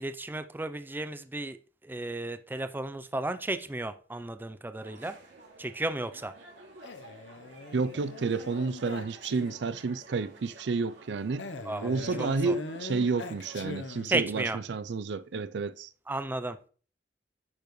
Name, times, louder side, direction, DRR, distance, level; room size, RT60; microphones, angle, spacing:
voice 1, 0.0-1.6 1.8-5.2 5.6-6.3 11.6-11.9 12.2-12.5 14.1-14.6 16.1-16.7, right 2 dB, 10° right, 0.4 m, -33 dB
sound 1, 4.8-13.7, right 2 dB, 85° right, 2.5 m, -52 dB
Male speech man speaking, 6.8-9.8 11.4-14.4, left 3 dB, 75° left, 0.8 m, -42 dB
voice 2, 7.7-11.5 11.8-15.9, right 4 dB, 70° right, 0.5 m, -30 dB
9.7 x 6.9 x 3.1 m
head